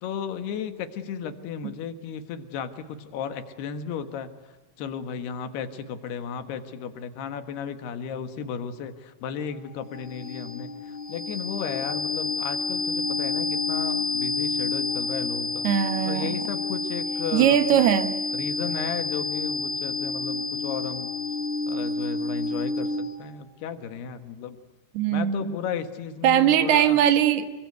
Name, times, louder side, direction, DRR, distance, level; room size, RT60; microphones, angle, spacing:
voice 1, 0.0-4.3 4.8-10.7 11.1-15.7 16.1-17.8 18.3-21.1 21.7-24.6 25.1-27.0, left 7 dB, 75° left, 9 dB, 3.5 m, -34 dB
sound 1, 9.4-23.3, left 3 dB, 55° left, 4.6 m, -29 dB
voice 2, 15.6-16.4 17.3-18.2 24.9-25.6 26.2-27.5, right 10 dB, 75° right, 10 dB, 3.2 m, -20 dB
26.5 x 23.5 x 9.4 m, 1.3 s
omnidirectional pair, 4.8 m